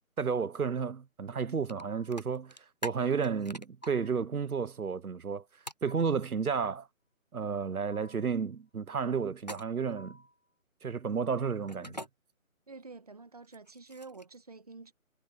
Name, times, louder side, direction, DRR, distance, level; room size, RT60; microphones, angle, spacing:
voice 1, 0.2-2.6 2.8-5.4 5.8-6.9 7.3-10.2 10.8-12.0, right 6 dB, 85° right, 1.2 m, -32 dB
sound 1, 1.7-1.8 2.1-3.9 5.7-5.9 9.4-9.9 11.7-12.1 13.4-14.4, equal, 30° left, 0.7 m, -43 dB
sound 2, 1.8-2.3 3.8-4.3 5.9-6.3 7.9-8.4 10.0-10.4, left 1 dB, 75° left, 7.2 m, -55 dB
voice 2, 12.7-14.9, right 4 dB, 25° right, 1.6 m, -48 dB
figure-of-eight pair, 175°, 42 cm